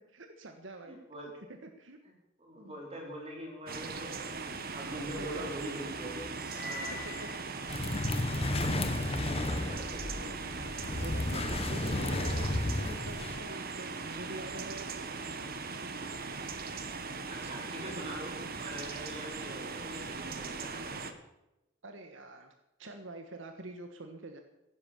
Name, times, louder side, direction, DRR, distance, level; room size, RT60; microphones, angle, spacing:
voice 1, 0.1-1.0 1.3-2.0 4.9-5.5 6.6-7.3 8.6-8.8 10.8-15.1 17.9-18.1 21.8-22.5 22.8-24.4, right 2 dB, 75° right, 5 dB, 1.5 m, -46 dB
voice 2, 0.9-1.3 2.4-6.2 6.6-7.0 9.4-10.3 17.3-21.1, right 1 dB, 30° right, 0 dB, 4.3 m, -43 dB
sound 1, 3.7-21.1, right 4 dB, 50° right, 1.4 m, -40 dB
sound 2, 6.3-8.2, left 2 dB, 5° right, 3.4 m, -44 dB
sound 3, 7.7-13.4, left 2 dB, 30° left, 1.0 m, -33 dB
16.0 x 11.5 x 7.1 m, 0.93 s
head